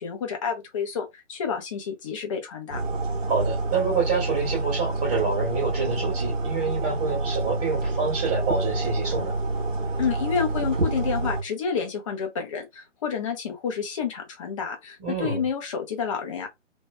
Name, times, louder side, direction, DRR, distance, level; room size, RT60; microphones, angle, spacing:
voice 1, 0.0-2.8 10.0-16.5, left 6 dB, 25° left, 0.8 m, -29 dB
sound 1, 2.7-11.4, right 2 dB, 75° right, 1.5 m, -28 dB
voice 2, 3.3-9.4 15.0-15.4, right 4 dB, 25° right, 2.0 m, -27 dB
3.3 x 3.0 x 2.3 m
figure-of-eight pair, 135°, 38 cm